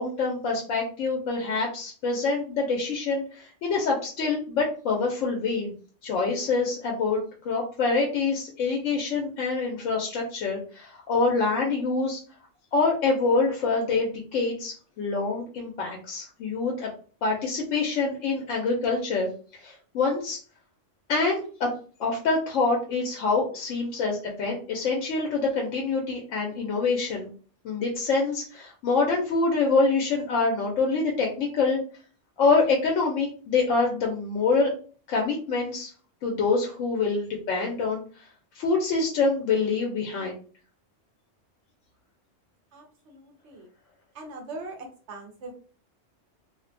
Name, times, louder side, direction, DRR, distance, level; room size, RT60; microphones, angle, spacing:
voice 1, 0.0-5.7 6.0-7.2 7.4-12.2 12.7-16.9 17.2-20.4 21.1-21.7 22.0-27.3 27.6-31.8 32.4-34.7 35.1-35.9 36.2-38.2 38.5-40.4, left 4 dB, 85° left, 0 dB, 0.9 m, -26 dB
voice 2, 42.7-43.7 44.1-45.5, right 2 dB, 70° right, 2 dB, 0.9 m, -41 dB
2.5 x 2.1 x 2.5 m, 0.41 s
omnidirectional pair, 1.3 m